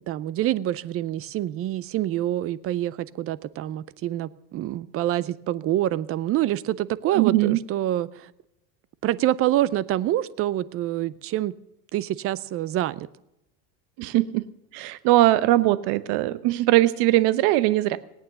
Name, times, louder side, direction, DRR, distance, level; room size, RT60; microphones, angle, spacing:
voice 1, 0.0-8.3 9.0-11.5 11.9-13.1, right 13 dB, 30° right, 19 dB, 0.5 m, -26 dB
voice 2, 7.1-7.6 14.0-14.5 14.7-18.0, right 16 dB, 55° right, 15 dB, 0.9 m, -20 dB
18.0 x 9.0 x 6.9 m, 0.89 s
supercardioid pair, 115°, 49 cm